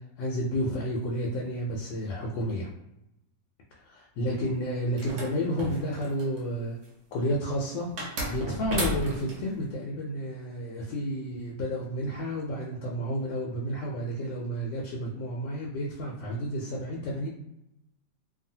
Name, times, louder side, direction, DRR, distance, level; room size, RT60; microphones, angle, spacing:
voice 1, 0.2-2.7 3.9-6.8 7.1-7.9 8.3-17.3, equal, 85° left, -2 dB, 1.3 m, -31 dB
sound 1, 5.0-6.4 8.0-9.4, right 1 dB, 60° right, 0.8 m, -33 dB
2.6 x 2.6 x 2.7 m, 0.88 s
omnidirectional pair, 1.9 m